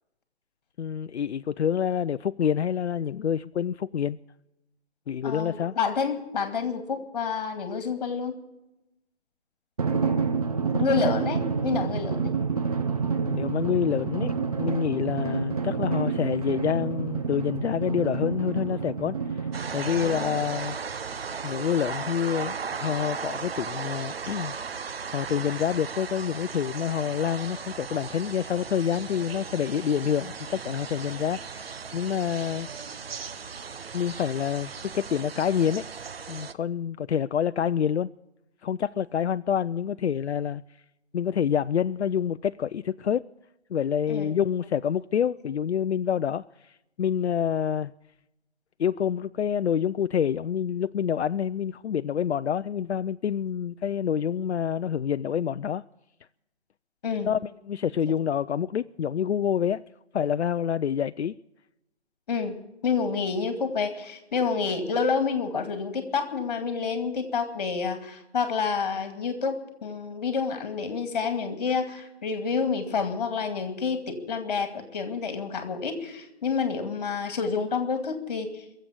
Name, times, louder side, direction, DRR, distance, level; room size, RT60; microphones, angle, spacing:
voice 1, 0.8-4.2 5.1-5.7 13.2-21.0 21.4-24.5 25.1-32.7 33.9-35.9 36.3-38.1 38.6-40.6 41.1-43.2 43.7-46.7 47.0-47.9 48.8-55.8 57.3-59.8 60.1-61.3, left 8 dB, 80° left, 0.5 m, -27 dB
voice 2, 5.2-8.4 10.8-12.3 20.0-20.4 44.1-44.3 57.0-57.3 62.3-62.5 62.8-78.6, left 5 dB, 40° left, 2.3 m, -28 dB
Drum, 9.8-20.8, right 5 dB, 35° right, 0.5 m, -28 dB
sound 1, 19.5-36.5, right 6 dB, 60° right, 0.8 m, -37 dB
22.0 x 7.7 x 8.3 m
figure-of-eight pair, 160°, 33 cm